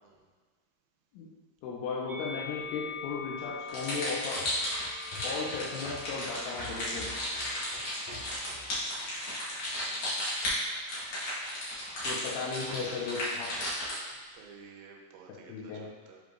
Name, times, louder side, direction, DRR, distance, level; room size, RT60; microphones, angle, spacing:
voice 1, 1.6-4.4 5.2-7.1 12.0-13.5 15.5-15.9, left 5 dB, 85° left, -5 dB, 3.3 m, -36 dB
Musical instrument, 2.1-8.5 9.3-10.3, left 5 dB, 60° right, 2.9 m, -45 dB
sound 1, 3.7-14.1, left 1 dB, 70° left, 1.3 m, -34 dB
sound 2, 4.4-8.8 9.2-9.3, left 1 dB, 55° left, 2.9 m, -46 dB
voice 2, 14.1-16.2, right 5 dB, 90° right, 1 dB, 3.4 m, -54 dB
8.1 x 5.2 x 2.5 m, 1.4 s
omnidirectional pair, 5.6 m